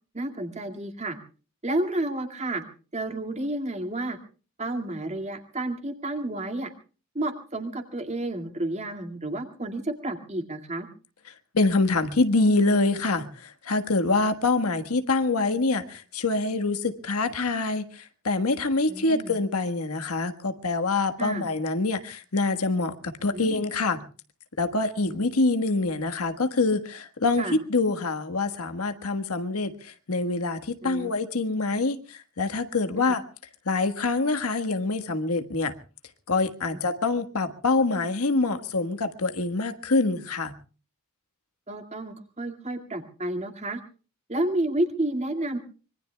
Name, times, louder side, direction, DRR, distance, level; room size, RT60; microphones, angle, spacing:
voice 1, 0.1-1.2 1.6-2.6 2.9-4.2 4.6-6.7 7.1-10.9 18.9-19.4 21.2-21.5 23.3-23.6 27.4-27.6 30.8-31.1 33.0-33.1 36.7-36.8 41.7-43.8 44.3-45.6, right 1 dB, 30° right, 2.2 m, -30 dB
voice 2, 11.5-24.0 24.6-33.2 33.6-35.8 36.3-40.5, left 3 dB, 85° left, 1.5 m, -25 dB
25.0 x 22.5 x 2.3 m
head